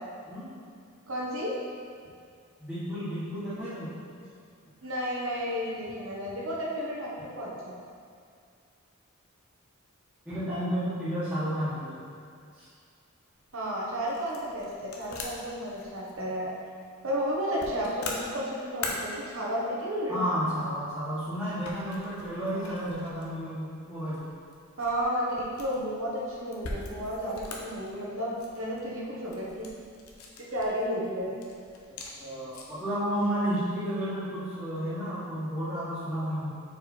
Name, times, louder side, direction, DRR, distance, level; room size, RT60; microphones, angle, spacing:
voice 1, 1.1-1.5 4.8-7.8 13.5-16.5 17.0-20.2 22.5-22.7 24.8-29.7 30.5-31.3, equal, 65° right, -5 dB, 1.2 m, -32 dB
voice 2, 2.6-3.9 10.2-11.9 12.6-12.7 20.1-24.2 32.0-36.5, equal, 10° right, -15 dB, 1.4 m, -32 dB
sound 1, 13.3-32.9, left 3 dB, 85° left, 0.8 m, -44 dB
4.7 x 4.7 x 4.3 m, 2.3 s
head